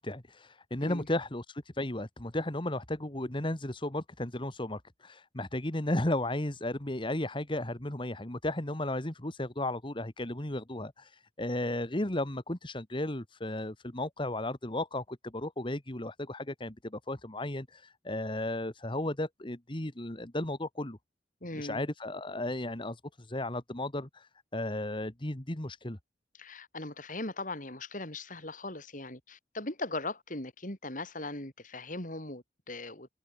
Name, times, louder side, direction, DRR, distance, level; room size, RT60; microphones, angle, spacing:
voice 1, 0.0-21.0 21.5-26.0, left 1 dB, 30° left, 1.9 m, -34 dB
voice 2, 21.4-21.8 26.4-33.1, left 2 dB, 50° left, 5.5 m, -39 dB
head